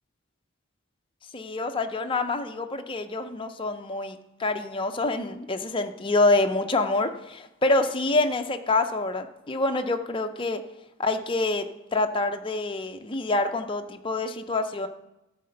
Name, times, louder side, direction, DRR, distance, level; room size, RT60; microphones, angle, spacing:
voice 1, 1.3-10.6 11.0-11.7 11.9-14.9, left 2 dB, 25° left, 6 dB, 0.6 m, -26 dB
12.0 x 4.3 x 7.6 m, 0.93 s
head